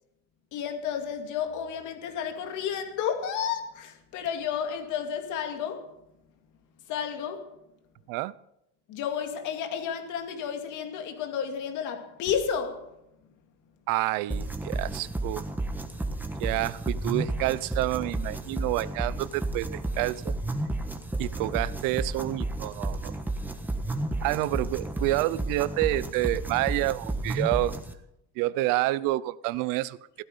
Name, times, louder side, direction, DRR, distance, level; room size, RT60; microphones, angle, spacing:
voice 1, 0.5-5.9 6.9-7.5 8.9-12.9, left 8 dB, 65° left, 2.3 m, -32 dB
voice 2, 13.9-15.4 16.4-20.3 21.2-23.1 24.2-27.7 28.4-30.2, right 17 dB, 80° right, 0.7 m, -28 dB
sound 1, 14.3-27.9, right 2 dB, 5° right, 1.2 m, -32 dB
15.5 x 13.0 x 5.5 m
cardioid pair, 140°, 33 cm